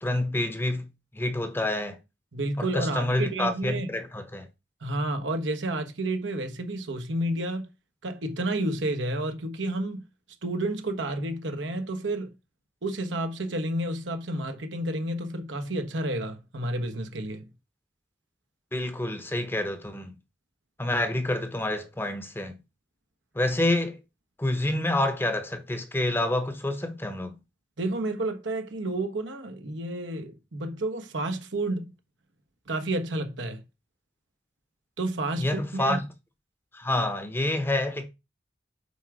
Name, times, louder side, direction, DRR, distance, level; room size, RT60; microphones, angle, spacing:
voice 1, 0.0-0.9 1.1-2.0 2.6-4.5 18.7-20.1 20.8-22.6 23.3-24.0 24.4-27.4 35.4-36.0 36.7-38.1, left 1 dB, 10° left, 0.9 m, -28 dB
voice 2, 2.3-3.9 4.8-7.7 8.0-10.0 10.4-12.3 12.8-17.5 27.8-31.9 32.7-33.6 35.0-36.0, right 1 dB, 75° right, 1.2 m, -30 dB
8.3 x 3.7 x 4.7 m
head